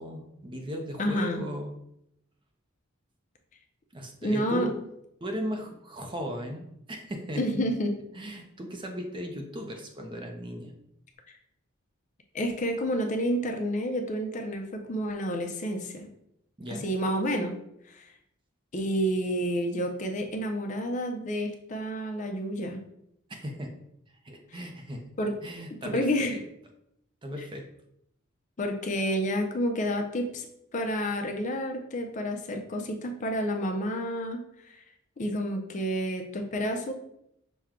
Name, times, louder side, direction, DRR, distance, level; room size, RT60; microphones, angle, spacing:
voice 1, 0.0-1.7 3.9-4.8 5.2-7.5 8.1-10.7 16.6-16.9 23.3-23.7 24.2-25.0 25.4-26.4 27.2-27.7, equal, 25° right, 3 dB, 0.6 m, -37 dB
voice 2, 1.0-1.4 4.2-4.7 7.4-7.9 12.3-16.1 16.7-17.5 17.9-18.1 18.7-22.8 24.5-24.6 25.2-25.3 25.8-26.4 28.6-30.5 30.7-34.4 35.2-36.9, equal, 40° left, 4 dB, 0.5 m, -29 dB
6.0 x 2.2 x 3.6 m, 0.78 s
head